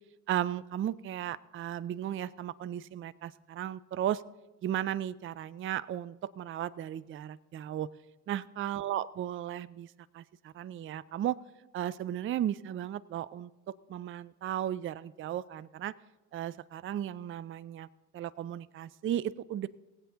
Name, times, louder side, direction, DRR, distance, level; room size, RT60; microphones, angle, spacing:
voice 1, 0.3-4.2 4.6-7.9 8.3-11.4 11.7-15.9 16.3-17.9 18.1-19.7, right 11 dB, 30° right, 18 dB, 0.4 m, -35 dB
19.0 x 8.3 x 3.9 m, 1.1 s
figure-of-eight pair, 40°, 41 cm